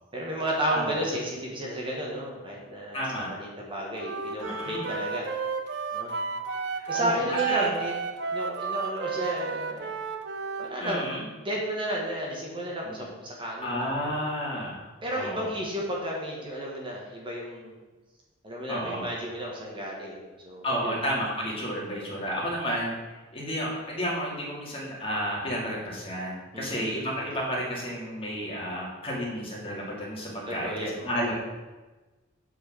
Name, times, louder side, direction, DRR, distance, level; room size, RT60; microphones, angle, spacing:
voice 1, 0.1-5.3 5.9-6.1 6.9-7.9 8.3-9.9 10.6-13.9 15.0-17.8 18.4-21.0 21.8-22.0 26.5-26.9 30.5-30.9 31.3-31.4, right 1 dB, 25° right, -2 dB, 1.4 m, -32 dB
voice 2, 2.9-3.3 4.4-4.9 6.7-7.7 10.8-11.2 12.9-13.0 13.6-15.5 18.7-19.1 20.6-31.3, equal, 30° left, -4 dB, 2.3 m, -32 dB
Wind instrument woodwind instrument, 4.0-10.7, right 5 dB, 55° right, 0.8 m, -32 dB
8.3 x 4.8 x 6.1 m, 1.2 s
head